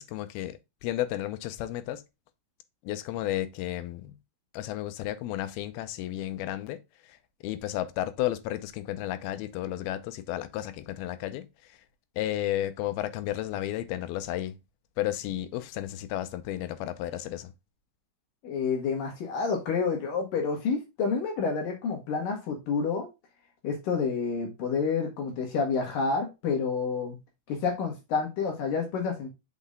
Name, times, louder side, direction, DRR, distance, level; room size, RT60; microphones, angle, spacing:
voice 1, 0.0-2.0 2.8-4.2 4.5-7.2 7.4-11.8 12.2-14.6 15.0-17.5, left 13 dB, 80° left, 2.6 m, -33 dB
voice 2, 18.4-23.1 23.6-27.2 27.5-29.3, left 5 dB, 65° left, 3.1 m, -29 dB
6.0 x 5.5 x 3.6 m
omnidirectional pair, 4.4 m